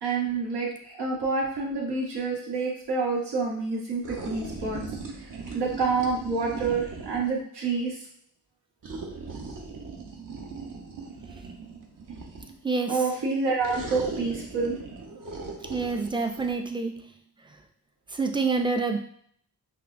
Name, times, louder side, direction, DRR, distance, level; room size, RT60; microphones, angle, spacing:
voice 1, 0.0-4.8 5.5-8.0 12.9-14.8, right 4 dB, 80° right, -3 dB, 1.2 m, -28 dB
sound 1, 4.0-7.4 8.8-12.6 13.6-16.5, right 3 dB, 55° right, 0.8 m, -39 dB
voice 2, 12.6-13.0 15.7-17.1 18.1-19.0, right 4 dB, 15° right, 5 dB, 0.4 m, -27 dB
5.6 x 2.0 x 2.5 m, 0.63 s
cardioid pair, 65°, 40 cm